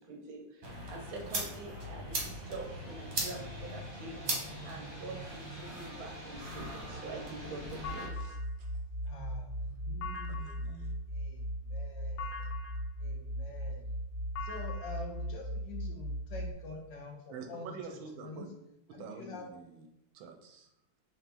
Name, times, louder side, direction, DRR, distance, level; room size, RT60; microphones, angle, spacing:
voice 1, 0.0-4.2 4.6-8.4, right 2 dB, 60° right, 2 dB, 1.0 m, -45 dB
sound 1, 0.6-8.1, right 1 dB, 35° right, 0.9 m, -40 dB
sound 2, 7.8-16.5, equal, 85° left, 1.4 m, -38 dB
voice 2, 9.0-10.7 11.1-12.5 13.0-13.9 14.4-17.7 18.2-18.5 18.9-19.4, left 2 dB, 65° left, 1 dB, 1.4 m, -46 dB
voice 3, 10.3-11.0 17.3-18.5 19.0-19.9 20.1-20.7, right 5 dB, 85° right, 4 dB, 1.4 m, -47 dB
5.0 x 3.0 x 3.4 m, 0.84 s
omnidirectional pair, 2.1 m